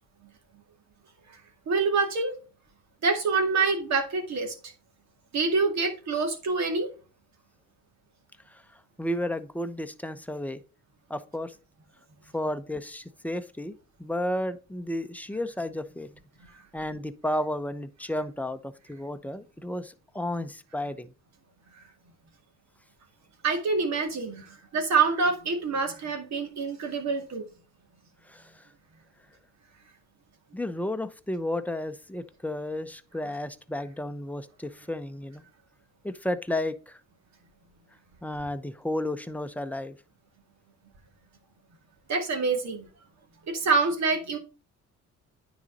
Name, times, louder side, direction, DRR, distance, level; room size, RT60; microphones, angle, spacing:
voice 1, 1.7-2.4 3.0-4.5 5.3-6.9 23.4-27.4 42.1-42.9 43.5-44.4, right 4 dB, 65° right, 4 dB, 2.3 m, -26 dB
voice 2, 9.0-10.6 11.1-11.5 12.3-16.1 16.7-21.1 28.3-28.6 30.5-35.4 36.0-37.0 38.2-40.0, left 1 dB, 5° left, 10 dB, 0.8 m, -32 dB
9.6 x 4.1 x 5.1 m, 0.34 s
cardioid pair, 90°, 30 cm